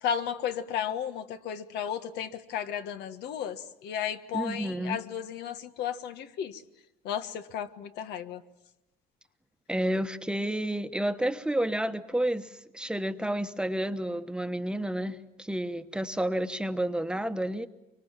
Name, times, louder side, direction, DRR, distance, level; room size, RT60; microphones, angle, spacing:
voice 1, 0.0-6.6 7.0-8.4, left 9 dB, 80° left, 9 dB, 1.5 m, -34 dB
voice 2, 4.3-5.0 9.7-17.7, right 1 dB, 5° right, 8 dB, 1.1 m, -30 dB
24.5 x 24.0 x 7.5 m, 0.95 s
cardioid pair, 110°, 17 cm